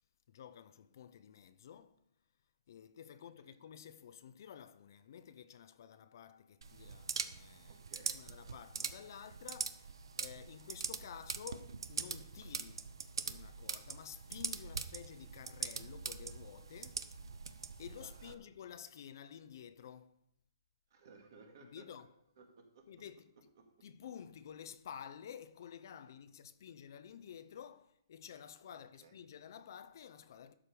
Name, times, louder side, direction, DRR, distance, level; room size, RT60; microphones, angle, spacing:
voice 1, 0.3-2.0 2.7-7.8 8.1-12.8 13.2-17.1 17.8-20.2 21.6-22.1 22.9-23.3 23.8-30.5, left 8 dB, 50° left, 0.6 m, -52 dB
sound 1, 6.6-18.3, right 5 dB, 85° right, 0.7 m, -43 dB
voice 2, 7.6-8.2 9.0-9.1 18.0-18.3 20.9-22.0 22.4-22.9 23.6-23.7 28.7-29.1, right 4 dB, 50° right, 2.0 m, -60 dB
12.0 x 5.0 x 5.2 m
hypercardioid pair, 165°, 2 cm